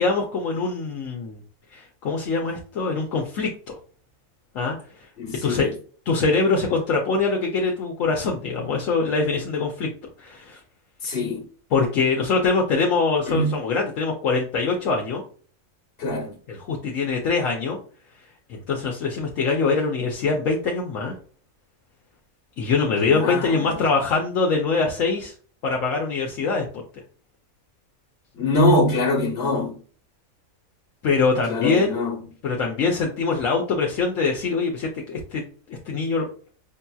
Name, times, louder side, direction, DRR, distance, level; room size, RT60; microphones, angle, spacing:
voice 1, 0.0-1.4 1.7-3.8 4.5-4.8 5.4-5.7 6.1-9.9 10.2-10.6 11.0-11.2 11.7-15.2 16.5-17.8 18.5-21.2 22.6-25.3 25.6-26.8 31.0-32.0 32.4-35.4 35.7-36.3, left 4 dB, 70° left, 1.1 m, -23 dB
voice 2, 5.2-5.7 11.0-11.4 13.3-13.6 16.0-16.3 23.0-23.8 28.3-29.8 31.5-32.1, left 1 dB, 50° left, 1.3 m, -23 dB
5.2 x 2.8 x 2.3 m
omnidirectional pair, 1.4 m